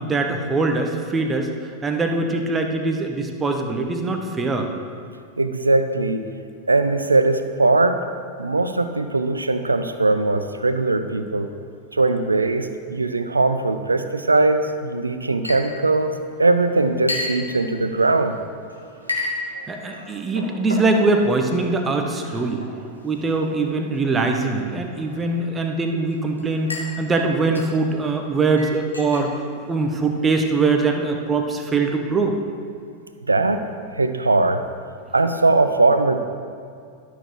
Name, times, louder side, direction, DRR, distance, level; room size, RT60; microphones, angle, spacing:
voice 1, 0.0-1.5 1.8-4.7 19.7-22.6 23.0-32.3, right 3 dB, 15° right, 4 dB, 1.0 m, -22 dB
voice 2, 5.4-6.2 6.7-8.0 8.4-11.5 11.9-16.1 16.4-18.3 33.3-33.6 33.9-34.6 35.1-36.2, right 2 dB, 80° right, 9 dB, 0.5 m, -20 dB
Chink clink, 15.4-30.5, left 2 dB, 85° left, 1.3 m, -36 dB
12.0 x 6.6 x 4.8 m, 2.3 s
figure-of-eight pair, 90°, 0 cm